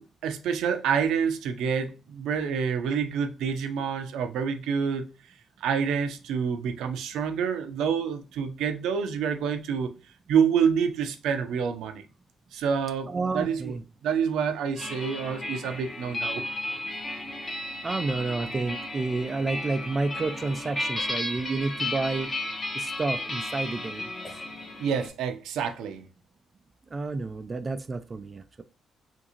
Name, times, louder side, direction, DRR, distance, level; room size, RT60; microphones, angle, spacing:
voice 1, 0.0-5.0 5.6-9.9 10.3-12.0 12.5-13.1 13.3-13.7 14.0-16.4 24.8-26.0, right 7 dB, 85° right, 0.5 m, -27 dB
voice 2, 13.1-13.8 17.8-22.3 22.7-24.1 26.9-28.6, right 3 dB, 30° right, 0.3 m, -30 dB
sound 1, 14.7-25.1, left 1 dB, 25° left, 1.1 m, -34 dB
3.7 x 2.6 x 2.8 m
cardioid pair, 90°, 0 cm